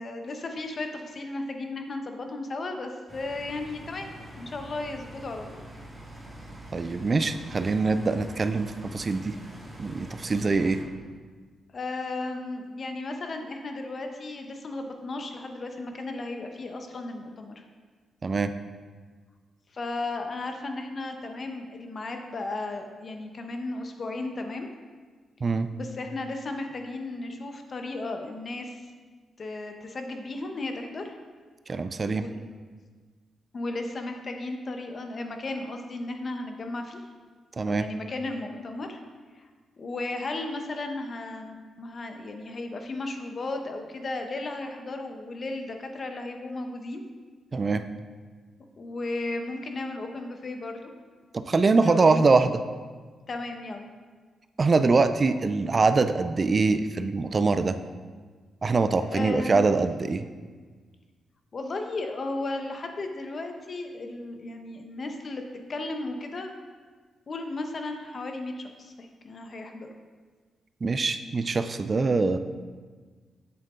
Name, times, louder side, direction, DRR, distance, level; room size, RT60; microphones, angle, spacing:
voice 1, 0.0-4.1 4.4-5.6 11.7-17.6 19.7-24.7 25.7-28.8 29.4-31.1 32.1-32.6 33.5-37.0 37.7-39.0 39.4-39.5 39.8-47.0 48.8-50.9 51.8-52.4 53.3-53.9 59.0-59.7 61.5-65.4 65.7-66.5 67.3-69.9, left 2 dB, 45° left, 5 dB, 1.0 m, -35 dB
sound 1, 3.1-10.8, right 1 dB, 15° right, 1.9 m, -44 dB
voice 2, 6.7-9.4 9.8-10.8 18.2-18.5 25.4-25.7 31.7-32.2 37.6-37.9 47.5-47.8 51.3-52.5 54.6-57.8 58.6-60.3 70.8-72.4, right 4 dB, 40° right, 10 dB, 0.4 m, -23 dB
8.1 x 7.4 x 3.8 m, 1.5 s
cardioid pair, 80°, 0 cm